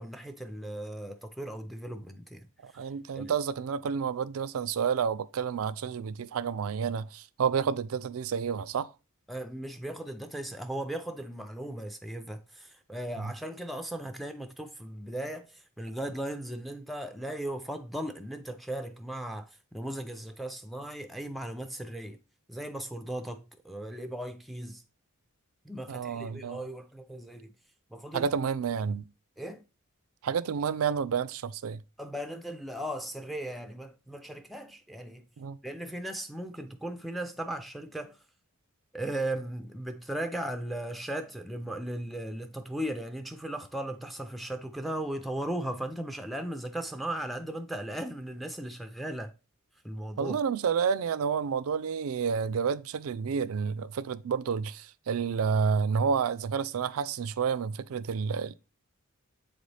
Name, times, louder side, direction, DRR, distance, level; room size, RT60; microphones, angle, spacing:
voice 1, 0.0-3.3 9.3-22.2 22.5-24.8 25.6-27.5 27.9-28.3 29.4-29.6 32.0-35.3 35.6-38.2 38.9-49.3 49.8-50.4, right 1 dB, ahead, 0.4 m, -37 dB
voice 2, 2.6-8.9 25.9-26.6 28.1-29.1 30.2-31.8 35.4-35.6 50.2-58.5, right 6 dB, 75° right, 0.4 m, -30 dB
7.8 x 4.0 x 3.3 m
head